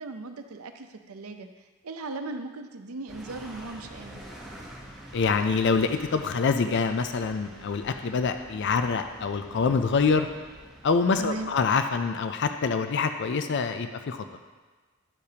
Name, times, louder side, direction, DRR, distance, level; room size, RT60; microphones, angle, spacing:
voice 1, 0.0-1.5 1.8-4.2 11.2-11.5, right 3 dB, 80° right, 7 dB, 0.6 m, -37 dB
sound 1, 3.1-11.5, right 1 dB, ahead, 1.0 m, -46 dB
voice 2, 5.1-10.3 10.8-14.2, left 5 dB, 55° left, 8 dB, 0.4 m, -25 dB
10.5 x 6.6 x 2.8 m, 1.3 s
head